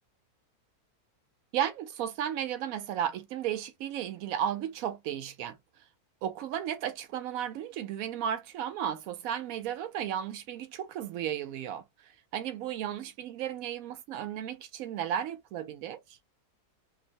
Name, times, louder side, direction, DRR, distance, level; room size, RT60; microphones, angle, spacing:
voice 1, 1.5-5.6 6.2-16.2, right 10 dB, 70° right, 1.0 m, -34 dB
2.9 x 2.0 x 2.7 m
omnidirectional pair, 1.6 m